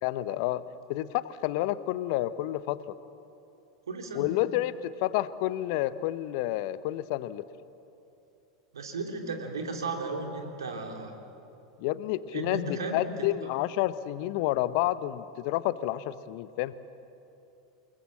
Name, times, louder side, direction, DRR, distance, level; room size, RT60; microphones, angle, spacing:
voice 1, 0.0-2.9 4.1-7.4 11.8-16.7, left 15 dB, 50° left, 15 dB, 0.8 m, -30 dB
voice 2, 3.9-4.3 8.7-11.1 12.3-13.1, right 3 dB, 75° right, 3 dB, 3.4 m, -35 dB
29.0 x 19.5 x 7.6 m, 2.8 s
figure-of-eight pair, 85°, 2 cm